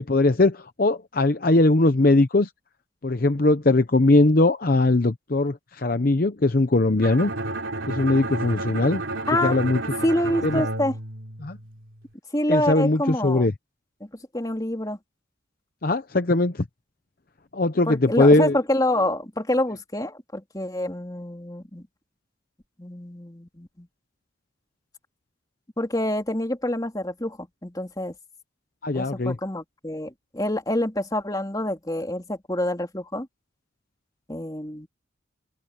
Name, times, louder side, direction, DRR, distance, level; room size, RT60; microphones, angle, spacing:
voice 1, 0.0-2.5 3.0-7.3 7.9-9.0 9.4-9.8 10.4-10.6 11.4-11.6 12.5-13.5 15.8-16.6 17.5-18.6 28.8-29.4, left 2 dB, 45° left, 0.8 m, -20 dB
Bowed string instrument, 7.0-11.9, right 2 dB, 80° right, 3.3 m, -31 dB
voice 2, 10.0-10.9 12.3-13.5 14.3-15.0 17.8-21.9 22.8-23.9 25.8-28.1 28.9-33.3 34.3-34.9, left 1 dB, 20° left, 3.5 m, -27 dB
open air
head